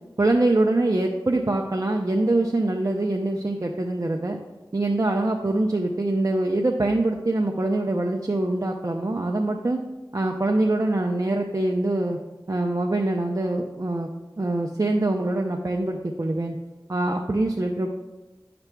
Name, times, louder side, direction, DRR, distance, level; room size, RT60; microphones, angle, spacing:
voice 1, 0.2-4.4 4.7-9.8 10.1-12.2 12.5-14.1 14.4-16.6 16.9-17.9, right 2 dB, 45° right, 0 dB, 0.6 m, -24 dB
11.0 x 5.9 x 2.2 m, 1.1 s
wide cardioid pair, 45°, 8 cm